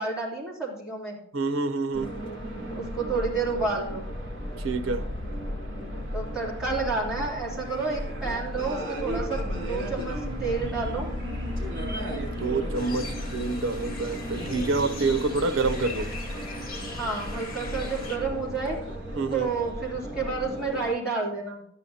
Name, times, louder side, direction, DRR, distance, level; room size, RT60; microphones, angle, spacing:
voice 1, 0.0-1.1 2.7-4.1 6.1-11.1 16.9-18.8 19.3-21.6, right 4 dB, 5° right, 3.3 m, -30 dB
voice 2, 1.3-2.1 4.6-5.1 12.2-16.1 19.2-19.5, right 3 dB, 75° right, 0.7 m, -27 dB
sound 1, 1.9-20.9, equal, 60° right, 3.6 m, -34 dB
sound 2, 9.7-18.2, right 1 dB, 20° right, 2.0 m, -46 dB
sound 3, 12.7-18.2, left 4 dB, 45° left, 1.6 m, -42 dB
12.5 x 10.0 x 2.8 m
head